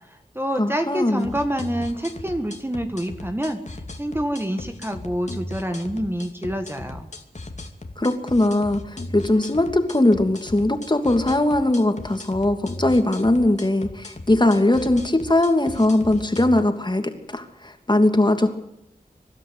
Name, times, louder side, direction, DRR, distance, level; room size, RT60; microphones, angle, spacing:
voice 1, 0.1-7.1, equal, 15° right, 6 dB, 1.9 m, -27 dB
voice 2, 0.6-1.3 8.0-18.5, left 1 dB, 30° left, 6 dB, 2.8 m, -20 dB
sound 1, 1.2-16.6, left 2 dB, 45° left, 2.5 m, -37 dB
24.0 x 12.0 x 9.4 m, 0.83 s
cardioid pair, 50°, 16 cm